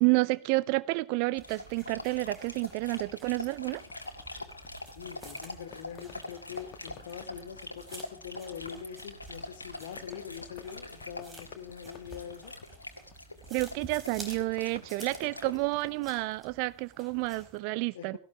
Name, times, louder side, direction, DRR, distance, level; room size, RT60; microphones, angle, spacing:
voice 1, 0.0-3.8 13.5-18.2, right 23 dB, 45° right, 0.6 m, -30 dB
Dog, 1.3-15.6, left 2 dB, 80° left, 1.8 m, -44 dB
sound 1, 1.4-17.6, right 2 dB, 15° right, 4.0 m, -52 dB
Fireworks, 3.7-16.0, left 9 dB, 35° left, 1.8 m, -54 dB
voice 2, 4.9-12.5 17.9-18.2, left 8 dB, 55° left, 2.7 m, -43 dB
17.5 x 16.0 x 3.5 m
figure-of-eight pair, 90°, 0 cm